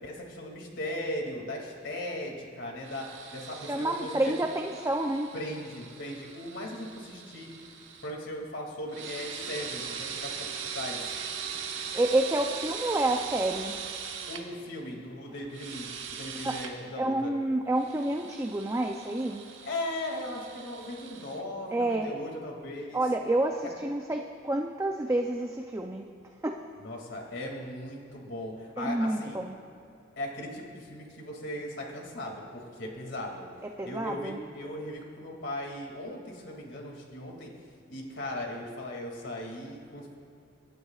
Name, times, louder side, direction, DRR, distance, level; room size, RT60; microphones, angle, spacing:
voice 1, 0.0-4.3 5.3-7.5 8.0-10.3 10.7-11.2 14.3-17.3 19.6-23.0 26.8-29.4 30.2-33.5 33.8-37.5 37.9-40.2, left 1 dB, 70° left, 0 dB, 2.4 m, -38 dB
sound 1, 2.8-8.1 8.9-14.4 15.5-16.7 17.8-21.4, right 6 dB, 70° right, 1.2 m, -40 dB
voice 2, 3.7-5.3 11.9-13.7 16.4-16.6 17.0-19.5 21.7-22.1 22.9-26.1 26.4-26.6 28.8-29.6 33.8-34.4, right 1 dB, 15° right, 3 dB, 0.5 m, -29 dB
25.5 x 11.5 x 2.4 m, 2.6 s
head